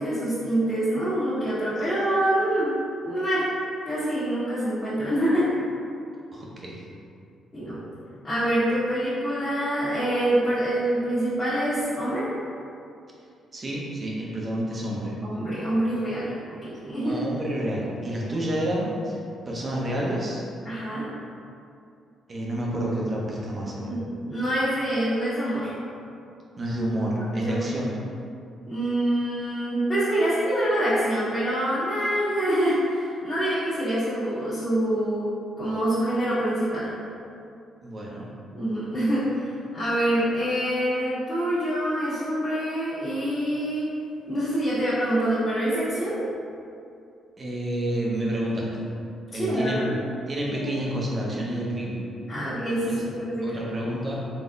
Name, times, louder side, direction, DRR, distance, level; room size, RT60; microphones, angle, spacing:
voice 1, 0.0-2.7 3.0-3.5 3.8-5.5 7.5-7.8 8.2-12.3 15.2-17.2 20.6-21.1 23.8-25.7 27.3-27.7 28.7-35.3 35.6-36.9 38.5-43.8 44.3-46.2 49.3-49.9 50.5-50.7 52.3-53.6, right 1 dB, 25° left, -15 dB, 1.4 m, -26 dB
voice 2, 6.3-6.8 13.5-15.2 17.0-19.2 19.5-20.4 22.3-23.9 26.6-28.0 37.8-38.3 47.4-48.9 49.3-49.8 50.3-52.1 52.8-53.0 53.4-54.2, right 1 dB, 35° right, -4 dB, 0.8 m, -29 dB
4.0 x 3.3 x 2.6 m, 2.5 s
cardioid pair, 90°, 0 cm